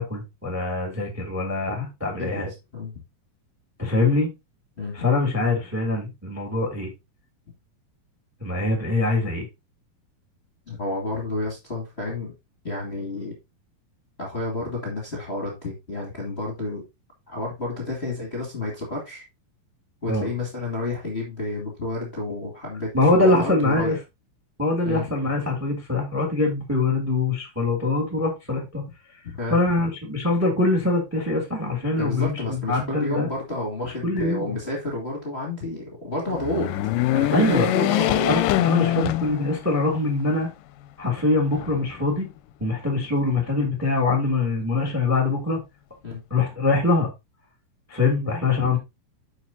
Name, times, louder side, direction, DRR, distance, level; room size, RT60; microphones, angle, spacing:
voice 1, 0.0-2.5 3.8-4.3 4.9-6.9 8.4-9.5 20.1-20.3 22.9-23.9 24.6-28.8 29.5-33.3 33.8-34.5 37.3-37.7 38.2-40.5 41.0-42.3 42.6-45.6 46.3-47.1 47.9-48.8, left 2 dB, 5° right, 1.8 m, -23 dB
voice 2, 10.7-12.3 12.6-13.4 14.2-16.8 17.3-19.2 20.0-22.9 23.2-24.0 24.8-25.0 29.3-29.6 32.0-36.7 37.1-38.3 46.0-46.2, left 2 dB, 20° left, 2.0 m, -30 dB
sound 1, 36.3-39.9 40.4-40.5 41.5-42.3, left 14 dB, 80° left, 2.1 m, -24 dB
10.0 x 6.4 x 2.8 m
omnidirectional pair, 4.0 m